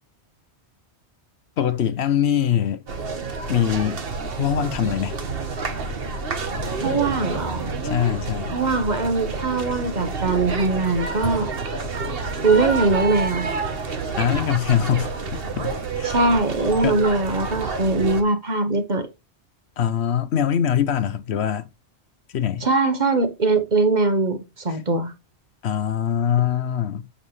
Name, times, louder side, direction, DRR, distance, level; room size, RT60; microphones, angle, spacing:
voice 1, 1.6-2.8 3.5-4.0 4.4-5.1 7.8-8.6 14.2-16.1 16.8-17.0 19.8-21.6 22.3-22.7 25.6-27.1, left 9 dB, 70° left, 1.0 m, -23 dB
sound 1, 2.9-18.2, right 4 dB, 55° right, 1.3 m, -29 dB
voice 2, 6.8-7.6 8.5-11.5 12.4-13.5 16.0-19.1 22.6-25.1, right 3 dB, 40° right, 1.2 m, -21 dB
7.4 x 6.2 x 3.2 m
omnidirectional pair, 1.2 m